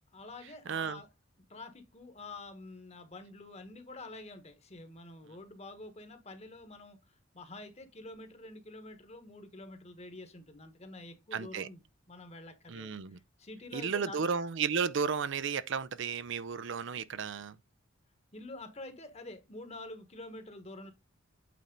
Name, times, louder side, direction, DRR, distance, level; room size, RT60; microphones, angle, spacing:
voice 1, 0.1-1.1 1.5-11.8 12.1-12.9 13.4-14.2 18.3-20.9, left 2 dB, 35° left, 1.3 m, -47 dB
voice 2, 0.7-1.0 11.3-11.7 12.7-13.2 13.7-17.6, right 6 dB, 65° right, 0.5 m, -33 dB
8.4 x 4.4 x 3.9 m
head